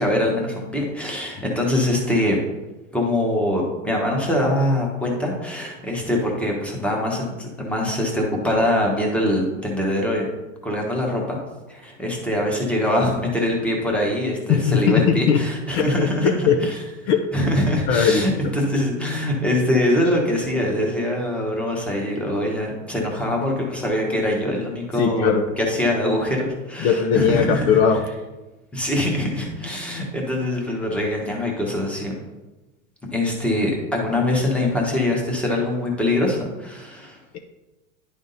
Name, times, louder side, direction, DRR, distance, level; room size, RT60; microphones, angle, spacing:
voice 1, 0.0-2.4 2.9-10.3 10.6-11.4 11.7-16.8 17.3-25.3 25.6-27.6 28.7-32.1 33.1-37.2, left 1 dB, 5° left, -1 dB, 1.2 m, -23 dB
voice 2, 14.5-15.4 15.7-16.6 17.1-17.3 17.9-18.5 25.0-25.5 26.8-28.0, left 7 dB, 55° left, 5 dB, 0.7 m, -19 dB
10.5 x 3.6 x 4.0 m, 1.1 s
supercardioid pair, 140°, 37 cm